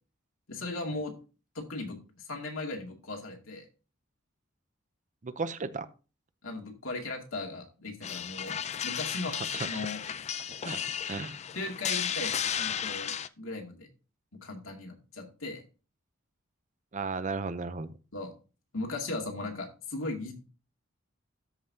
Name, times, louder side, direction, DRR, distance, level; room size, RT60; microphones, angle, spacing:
voice 1, 0.5-1.1 1.5-3.7 6.4-8.6 8.8-10.0 11.5-13.9 14.4-15.6 18.1-18.3 18.7-20.3, left 2 dB, 75° left, 1 dB, 2.4 m, -37 dB
voice 2, 5.2-5.9 9.3-9.7 10.6-11.4 16.9-17.9, right 4 dB, 40° right, 13 dB, 0.6 m, -35 dB
sound 1, 8.0-13.3, left 9 dB, 35° left, 0.4 m, -34 dB
13.0 x 5.5 x 2.8 m, 0.33 s
head